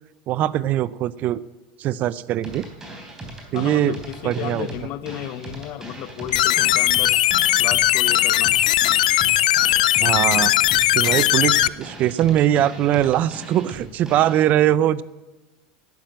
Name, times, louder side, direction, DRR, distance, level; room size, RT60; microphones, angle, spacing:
voice 1, 0.3-1.4 1.8-2.7 3.5-4.0 4.2-4.7 10.0-10.5 10.9-15.0, right 12 dB, 45° right, 19 dB, 0.5 m, -21 dB
sound 1, 2.4-14.4, right 1 dB, 15° right, 3.6 m, -38 dB
voice 2, 3.5-7.2 7.6-8.5, left 12 dB, 50° left, 15 dB, 0.8 m, -33 dB
sound 2, 6.3-11.7, left 14 dB, 85° left, 0.4 m, -18 dB
12.0 x 9.0 x 7.9 m, 1.1 s
supercardioid pair, 120°, 4 cm